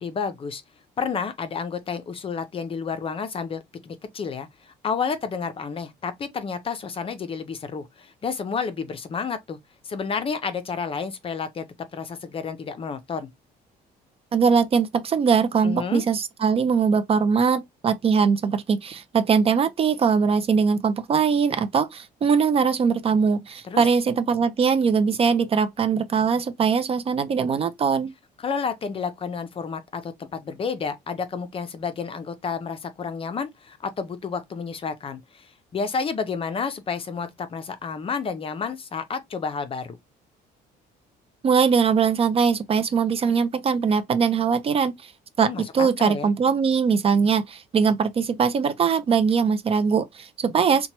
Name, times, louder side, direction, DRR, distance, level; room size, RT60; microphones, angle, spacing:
voice 1, 0.0-0.6 1.0-9.6 9.8-13.3 15.6-16.0 23.6-23.9 28.4-40.0 45.4-46.3, left 5 dB, 35° left, 0.5 m, -30 dB
voice 2, 14.3-28.1 41.4-45.1 45.4-50.9, right 6 dB, 35° right, 0.4 m, -21 dB
2.9 x 2.2 x 2.8 m
cardioid pair, 110°, 17 cm